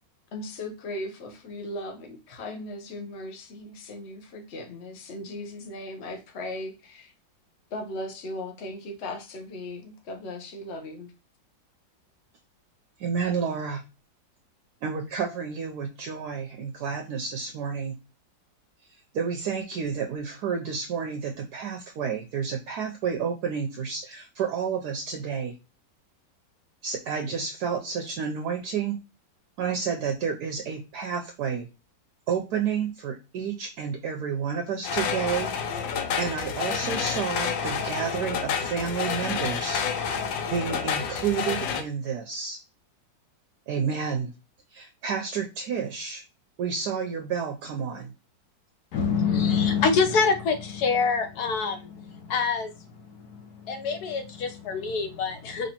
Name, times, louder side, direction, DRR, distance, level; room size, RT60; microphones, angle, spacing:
voice 1, 0.3-7.1 7.7-11.1, left 1 dB, 45° left, 4 dB, 1.0 m, -37 dB
voice 2, 13.0-13.8 14.8-18.0 19.1-25.6 26.8-29.0 29.6-31.7 32.3-35.5 35.9-40.2 40.5-42.6 43.7-44.3 44.7-46.2 46.6-48.1, right 6 dB, 70° right, 4 dB, 1.0 m, -30 dB
sound 1, 34.8-41.8, left 6 dB, 90° left, 1.4 m, -29 dB
voice 3, 48.9-52.9 53.2-55.7, left 5 dB, 65° left, 7 dB, 1.2 m, -26 dB
5.1 x 3.2 x 2.9 m, 0.29 s
omnidirectional pair, 2.0 m